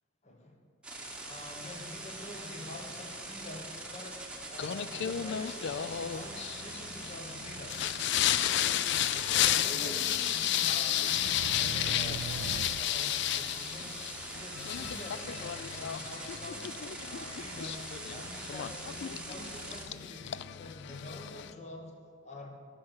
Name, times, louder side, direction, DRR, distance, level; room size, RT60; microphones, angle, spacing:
voice 1, 0.2-0.6 1.2-4.2 4.5-7.8 8.4-14.0 14.3-16.7 17.0-21.9 22.2-22.5, left 1 dB, 35° left, 2 dB, 1.2 m, -46 dB
sound 1, 0.8-19.8, right 2 dB, 5° right, 1.2 m, -43 dB
Singing, 4.6-21.5, left 11 dB, 60° left, 0.3 m, -33 dB
sound 2, 8.9-9.1 11.1-12.8 14.7-15.0, right 6 dB, 80° right, 0.3 m, -40 dB
12.0 x 6.2 x 6.4 m, 2.3 s
head